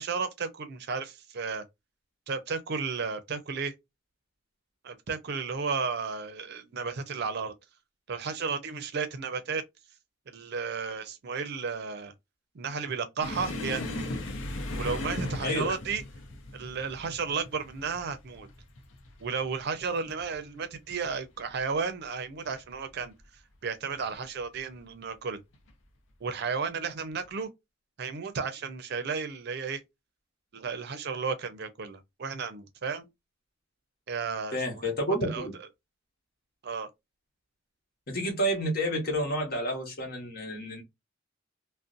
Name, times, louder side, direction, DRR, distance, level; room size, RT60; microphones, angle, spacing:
voice 1, 0.0-1.6 2.3-3.7 4.8-7.5 8.1-9.6 10.3-12.1 12.5-14.1 14.8-16.0 16.5-18.5 19.2-23.1 23.6-25.4 26.2-27.5 28.0-29.8 30.5-33.1 34.1-35.5 36.6-36.9, right 5 dB, 55° right, 0.5 m, -33 dB
sound 1, 13.2-20.4 20.7-21.1 21.4-21.6 22.4-23.0 24.0-24.2 25.5-25.7, left 1 dB, 80° left, 0.6 m, -38 dB
voice 2, 15.4-15.8 34.5-35.5 38.1-40.8, equal, 55° left, 1.1 m, -30 dB
2.5 x 2.1 x 2.4 m
head